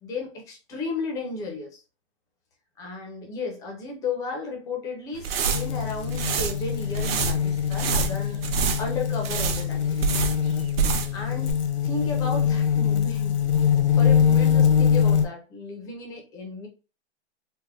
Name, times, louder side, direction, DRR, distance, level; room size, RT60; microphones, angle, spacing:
voice 1, 0.0-1.8 2.8-8.4 8.8-10.1 11.1-11.6 11.8-13.4 14.0-16.7, left 3 dB, 10° left, 2 dB, 0.4 m, -34 dB
sound 1, 5.1-11.2 11.5-11.6, right 6 dB, 60° right, 0.7 m, -27 dB
sound 2, 5.5-15.2, left 8 dB, 90° left, 0.8 m, -23 dB
3.4 x 2.0 x 3.5 m, 0.33 s
hypercardioid pair, 150°, 33 cm